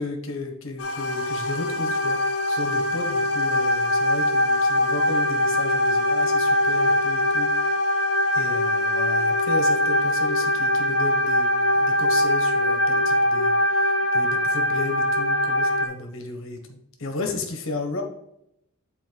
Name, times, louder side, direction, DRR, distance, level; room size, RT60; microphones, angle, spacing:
voice 1, 0.0-7.7 8.3-18.0, left 2 dB, 65° left, 4 dB, 1.4 m, -34 dB
sound 1, 0.8-15.9, left 1 dB, 85° left, 1.0 m, -22 dB
8.4 x 4.3 x 4.7 m, 0.78 s
head